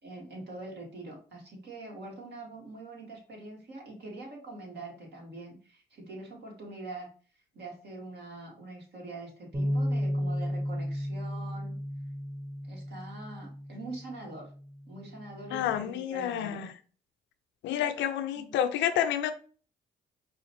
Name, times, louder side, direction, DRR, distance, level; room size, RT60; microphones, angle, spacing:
voice 1, 0.0-7.1 7.5-11.8 12.6-14.5 14.9-16.6 18.3-18.5, right 2 dB, 60° right, 0 dB, 1.7 m, -44 dB
Bass guitar, 9.5-15.8, equal, 25° right, 1.6 m, -34 dB
voice 2, 15.5-16.7 17.6-19.3, left 10 dB, 70° left, 9 dB, 0.5 m, -29 dB
4.8 x 2.4 x 3.0 m, 0.40 s
hypercardioid pair, 50°, 19 cm